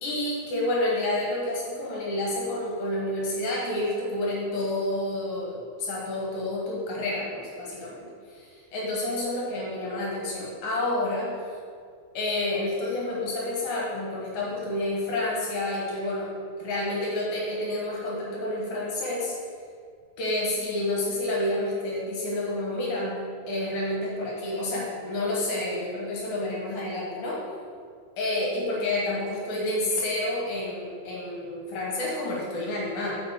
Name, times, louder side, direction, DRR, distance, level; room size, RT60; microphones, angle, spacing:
voice 1, 0.0-11.3 12.1-16.3 16.6-19.3 20.2-23.2 23.5-27.4 28.2-33.2, left 1 dB, 60° left, -5 dB, 2.8 m, -29 dB
8.8 x 7.6 x 3.8 m, 2.2 s
omnidirectional pair, 5.2 m